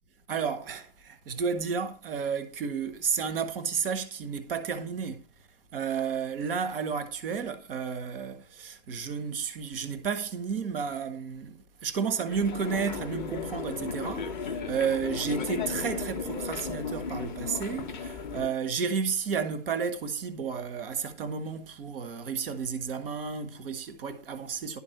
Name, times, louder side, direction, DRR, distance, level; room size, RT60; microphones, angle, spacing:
voice 1, 0.3-5.3 5.7-24.8, right 6 dB, ahead, 0.4 m, -32 dB
sound 1, 12.3-18.5, left 5 dB, 35° left, 1.0 m, -35 dB
11.0 x 4.5 x 6.5 m
hypercardioid pair, 155°, 44 cm